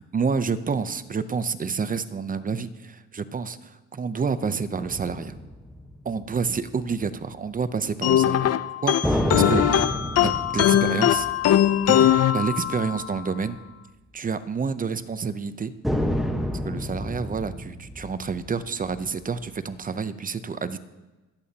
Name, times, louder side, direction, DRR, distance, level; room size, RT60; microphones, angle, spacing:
voice 1, 0.0-5.4 6.0-8.6 8.8-9.9 10.2-11.3 11.9-13.6 14.1-15.7 16.7-20.8, right 5 dB, 30° right, 13 dB, 0.6 m, -29 dB
sound 1, 4.8-6.7 9.0-12.8 13.1-13.2 15.8-19.5, equal, ahead, 1.2 m, -30 dB
sound 2, 8.0-13.1, left 11 dB, 55° left, 0.5 m, -21 dB
20.0 x 8.5 x 2.9 m, 1.2 s
cardioid pair, 90°, 30 cm